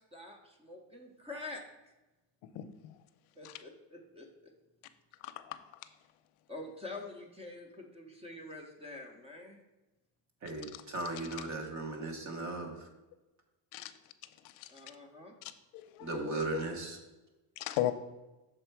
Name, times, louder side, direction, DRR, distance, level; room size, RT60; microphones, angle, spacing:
voice 1, 0.0-1.7 3.4-4.3 6.5-9.6 14.7-15.3, left 2 dB, 15° right, 3 dB, 0.6 m, -46 dB
voice 2, 5.2-5.6 10.7-10.8 13.7-13.9 14.6-14.7 15.4-16.6 17.6-17.9, left 14 dB, 80° left, 10 dB, 0.6 m, -37 dB
voice 3, 10.4-12.9 16.0-17.0, right 3 dB, 35° right, 3 dB, 1.1 m, -37 dB
6.5 x 4.4 x 4.5 m, 1.1 s
cardioid pair, 170°, 49 cm